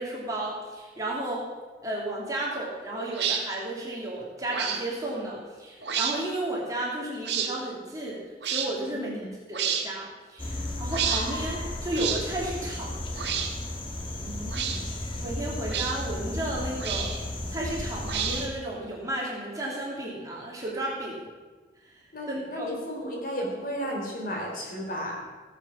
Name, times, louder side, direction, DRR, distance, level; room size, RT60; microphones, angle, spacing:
voice 1, 0.0-1.4 1.8-12.9 15.2-17.1 17.5-21.2 22.3-22.7, right 1 dB, 20° right, -4 dB, 3.0 m, -33 dB
sound 1, 3.1-3.4 4.5-4.8 5.8-6.1 7.2-7.5 8.4-8.7 9.5-9.9 10.9-11.2 11.9-12.2 13.1-13.5 14.5-14.8 15.7-15.9 16.8-17.2 18.1-18.6, right 8 dB, 70° right, 1.7 m, -29 dB
voice 2, 8.9-9.3 14.2-14.9 22.1-25.2, equal, 50° left, -1 dB, 3.4 m, -34 dB
sound 2, 10.4-18.5, left 1 dB, 30° left, 1.6 m, -34 dB
17.5 x 8.1 x 5.8 m, 1.4 s
head